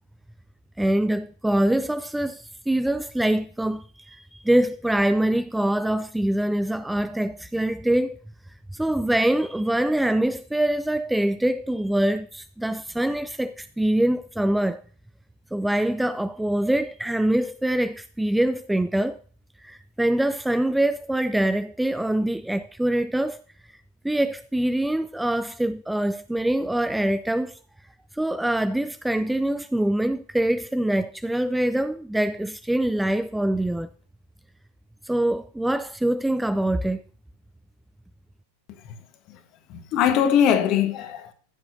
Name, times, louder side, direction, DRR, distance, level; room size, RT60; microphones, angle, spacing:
voice 1, 0.8-8.2 8.7-14.8 15.5-19.2 19.6-23.4 24.0-27.6 28.1-33.9 35.0-37.0, right 1 dB, 5° right, 0.3 m, -24 dB
voice 2, 39.7-41.3, left 9 dB, 40° left, 1.4 m, -21 dB
14.5 x 7.7 x 2.7 m
figure-of-eight pair, 90°, 0 cm